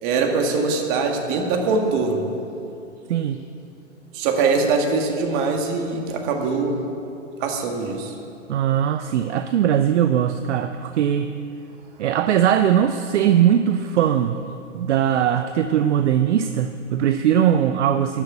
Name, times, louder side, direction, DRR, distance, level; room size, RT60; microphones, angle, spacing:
voice 1, 0.0-2.3 4.1-6.8 7.4-8.1, right 4 dB, 40° right, 3 dB, 1.9 m, -22 dB
voice 2, 3.1-3.4 8.5-11.3 12.0-14.4 14.7-18.2, right 9 dB, 65° right, 10 dB, 0.7 m, -20 dB
13.0 x 6.7 x 9.8 m, 2.7 s
hypercardioid pair, 120°, 37 cm